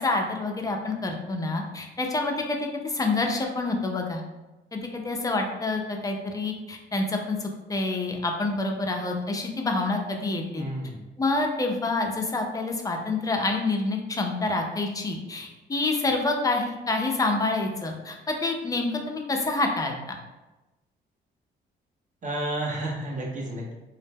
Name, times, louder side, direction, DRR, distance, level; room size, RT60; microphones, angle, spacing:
voice 1, 0.0-4.2 4.7-10.6 11.2-20.2, left 2 dB, 20° left, 2 dB, 0.4 m, -27 dB
voice 2, 10.5-11.0 22.2-23.7, right 1 dB, 40° right, -1 dB, 0.7 m, -31 dB
2.0 x 2.0 x 3.3 m, 1.1 s
cardioid pair, 90°, 20 cm